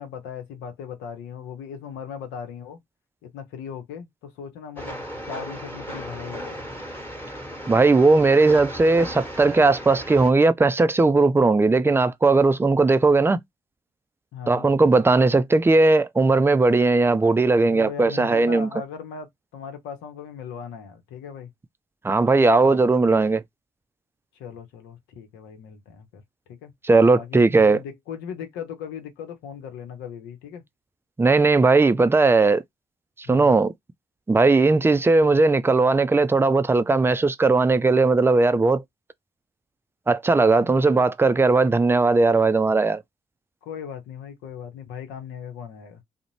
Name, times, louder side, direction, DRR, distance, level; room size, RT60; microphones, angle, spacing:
voice 1, 0.0-2.8 3.2-5.0 5.2-6.7 14.3-14.7 17.7-19.3 19.5-21.5 22.6-22.7 24.4-26.2 26.6-26.7 27.1-30.6 33.2-33.6 40.6-41.1 43.6-46.0, left 7 dB, 75° left, 0.7 m, -38 dB
Train, 4.8-10.3, equal, 10° left, 1.2 m, -36 dB
voice 2, 7.7-13.4 14.5-18.7 22.0-23.4 26.8-27.8 31.2-32.6 33.3-33.7 34.3-38.8 40.1-43.0, right 3 dB, 10° right, 0.4 m, -18 dB
2.4 x 2.0 x 3.0 m
hypercardioid pair, 40°, 19 cm